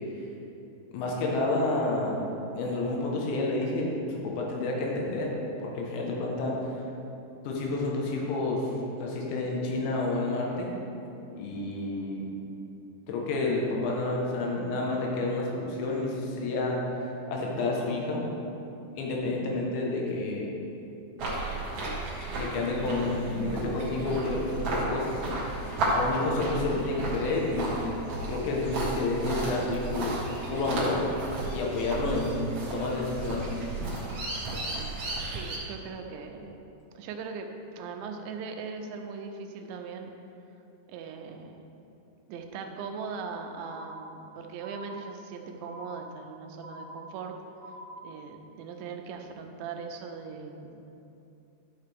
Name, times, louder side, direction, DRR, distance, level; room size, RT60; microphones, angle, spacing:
voice 1, 0.9-2.2 2.5-6.6 7.5-8.7 9.0-10.7 11.4-12.3 13.1-18.3 19.0-20.5 22.3-25.2 25.9-28.0 28.3-30.2 30.5-31.0 31.5-33.6, left 2 dB, 85° left, -2 dB, 3.5 m, -30 dB
voice 2, 19.4-19.8 35.3-36.6 37.0-37.5 37.7-40.1 40.9-41.7 42.3-47.4 48.0-51.0, right 5 dB, 85° right, 4 dB, 3.0 m, -40 dB
sound 1, 21.2-35.6, right 2 dB, 60° right, 1.6 m, -33 dB
sound 2, 43.6-44.3 44.6-45.3 45.6-46.3 46.6-47.3 47.6-48.3, equal, 40° right, 2.7 m, -45 dB
11.5 x 6.5 x 3.5 m, 2.8 s
omnidirectional pair, 5.1 m